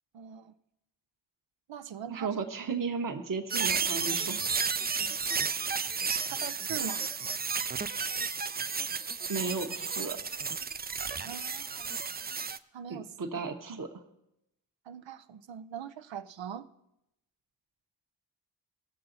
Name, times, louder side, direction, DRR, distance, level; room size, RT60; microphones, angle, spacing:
voice 1, 0.1-0.5 1.7-2.4 5.0-5.1 6.3-7.0 11.2-11.9 12.7-13.4 13.7-13.8 14.9-16.7, right 8 dB, 90° right, 12 dB, 0.6 m, -42 dB
voice 2, 2.1-4.4 9.3-10.2 12.9-13.9, right 4 dB, 50° right, 4 dB, 1.1 m, -34 dB
sound 1, 3.5-12.6, right 5 dB, 25° right, 0.3 m, -32 dB
18.5 x 6.9 x 3.9 m, 0.83 s
wide cardioid pair, 85°, 44 cm